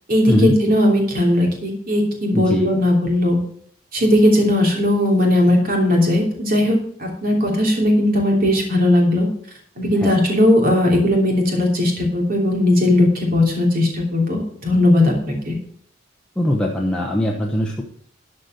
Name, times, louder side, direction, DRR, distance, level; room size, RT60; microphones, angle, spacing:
voice 1, 0.1-3.4 3.9-9.3 9.8-15.1 15.5-15.6, left 1 dB, 45° right, 1 dB, 3.0 m, -17 dB
voice 2, 2.3-2.7 10.0-10.1 16.4-17.8, left 1 dB, 5° left, -2 dB, 1.0 m, -20 dB
12.0 x 5.4 x 6.5 m, 0.63 s
head